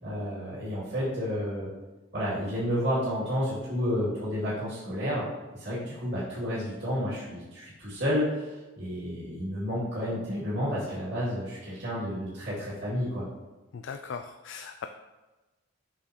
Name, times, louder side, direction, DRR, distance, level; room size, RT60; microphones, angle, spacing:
voice 1, 0.0-1.7 2.1-5.2 5.5-8.5 8.8-13.3, equal, 55° right, -10 dB, 2.4 m, -31 dB
voice 2, 13.7-14.9, left 6 dB, 60° left, 7 dB, 0.3 m, -39 dB
7.5 x 6.2 x 2.9 m, 1.2 s
head